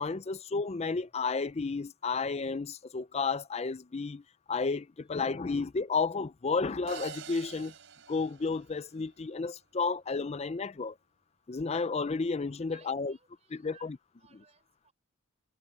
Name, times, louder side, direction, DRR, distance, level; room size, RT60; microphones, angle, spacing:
voice 1, 0.0-4.2 4.5-7.7 8.1-10.9 11.5-13.2 13.5-14.0, left 4 dB, 30° left, 0.5 m, -32 dB
sound 1, 6.9-9.2, right 6 dB, 65° right, 4.8 m, -46 dB
voice 2, 12.7-14.9, right 6 dB, 35° right, 5.6 m, -63 dB
head